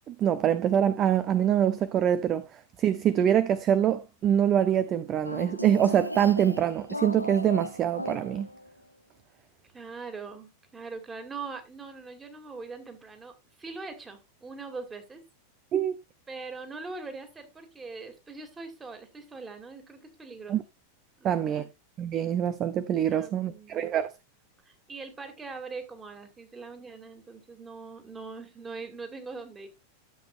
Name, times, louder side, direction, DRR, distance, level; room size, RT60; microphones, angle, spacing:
voice 1, 0.1-2.4 2.8-8.5 15.7-16.0 20.5-20.6 21.2-21.6 22.0-24.1, right 9 dB, 30° right, 0.7 m, -24 dB
sound 1, 5.2-8.8, equal, 90° left, 0.7 m, -37 dB
voice 2, 9.7-13.3 13.6-15.2 16.3-20.6 21.2-21.7 23.1-23.9 24.6-29.7, right 4 dB, 15° right, 2.4 m, -42 dB
12.5 x 7.9 x 2.5 m
figure-of-eight pair, 90°, 0 cm